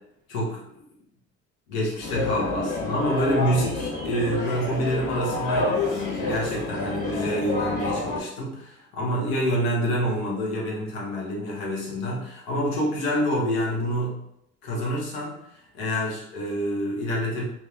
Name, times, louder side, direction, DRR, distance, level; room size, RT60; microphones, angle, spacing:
voice 1, 0.3-0.6 1.7-14.2 14.6-15.4 15.7-17.4, equal, 90° left, -2 dB, 0.8 m, -27 dB
sound 1, 2.0-8.2, left 2 dB, 55° left, 1.4 m, -28 dB
2.8 x 2.2 x 2.3 m, 0.75 s
supercardioid pair, 65°, 30 cm